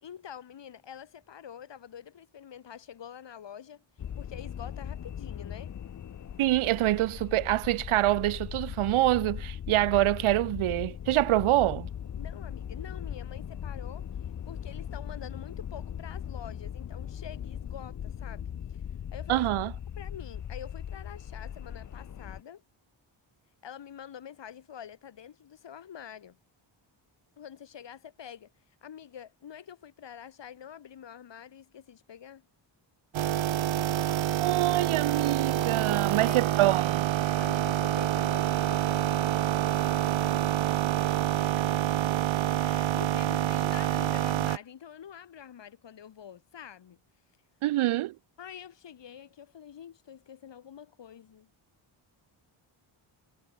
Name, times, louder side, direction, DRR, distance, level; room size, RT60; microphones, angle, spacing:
voice 1, 0.0-3.8 4.2-5.7 12.2-14.1 14.5-18.4 19.1-19.5 20.0-22.6 23.6-26.4 27.4-28.5 28.8-32.4 35.9-36.8 37.4-40.8 41.4-41.7 42.5-47.0 48.4-51.5, left 9 dB, 60° left, 3.3 m, -46 dB
sound 1, 4.0-22.4, left 9 dB, 40° left, 0.7 m, -39 dB
voice 2, 6.4-11.9 19.3-19.7 34.4-37.1 47.6-48.1, right 15 dB, 85° right, 0.7 m, -25 dB
sound 2, 33.1-44.6, right 12 dB, 65° right, 0.9 m, -27 dB
wide cardioid pair, 140°, 49 cm